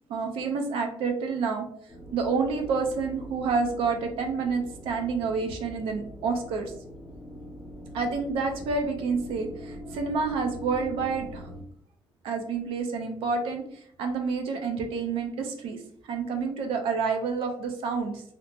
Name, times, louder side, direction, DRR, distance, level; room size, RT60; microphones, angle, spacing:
voice 1, 0.1-1.7 2.1-6.7 7.9-11.5 12.2-13.7 14.0-15.8 16.1-18.2, right 4 dB, 85° right, 4 dB, 0.6 m, -28 dB
sound 1, 1.9-11.6, equal, 5° left, 0.8 m, -43 dB
2.8 x 2.0 x 3.2 m, 0.64 s
cardioid pair, 135°, 9 cm